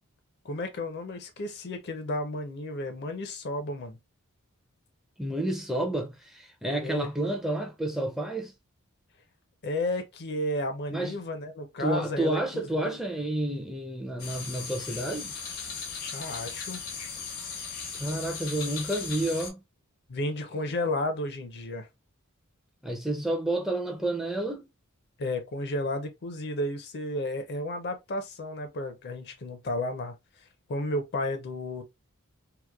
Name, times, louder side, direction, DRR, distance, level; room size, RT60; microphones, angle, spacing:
voice 1, 0.4-4.0 6.8-7.1 9.6-12.4 12.8-13.0 16.1-16.8 20.1-21.9 25.2-30.1 30.7-31.8, left 1 dB, 50° left, 0.5 m, -32 dB
voice 2, 5.2-8.5 10.9-11.1 11.8-15.3 18.0-19.6 22.8-24.7, right 1 dB, ahead, 0.4 m, -30 dB
sound 1, 14.2-19.5, left 5 dB, 80° left, 0.9 m, -37 dB
2.9 x 2.1 x 2.2 m
head